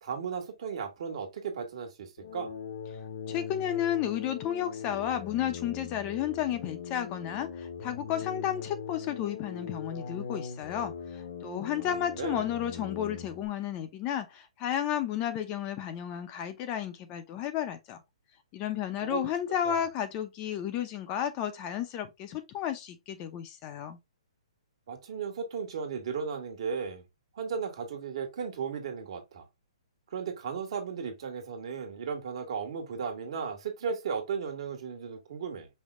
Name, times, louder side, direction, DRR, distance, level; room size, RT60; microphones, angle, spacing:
voice 1, 0.0-2.5 12.2-12.5 19.0-19.2 19.6-19.8 24.9-27.0 27.4-29.4 30.1-35.7, right 6 dB, 55° right, 1.4 m, -35 dB
sound 1, 2.2-13.5, left 6 dB, 65° left, 1.0 m, -40 dB
voice 2, 3.3-18.0 18.5-24.0, left 10 dB, 25° left, 0.6 m, -32 dB
5.3 x 2.1 x 3.7 m
hypercardioid pair, 150°, 3 cm